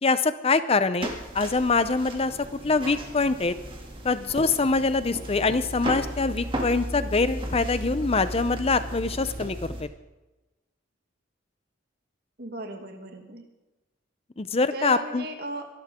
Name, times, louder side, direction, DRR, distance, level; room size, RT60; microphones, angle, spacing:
voice 1, 0.0-1.1 1.3-2.4 2.6-3.5 4.0-9.9 14.4-15.3, left 3 dB, 30° left, 13 dB, 0.6 m, -24 dB
sound 1, 1.0-9.8, equal, 25° right, 2.4 m, -35 dB
voice 2, 12.4-13.4 14.7-15.7, right 2 dB, 55° right, 4 dB, 2.3 m, -36 dB
24.0 x 12.5 x 3.7 m, 1.1 s
head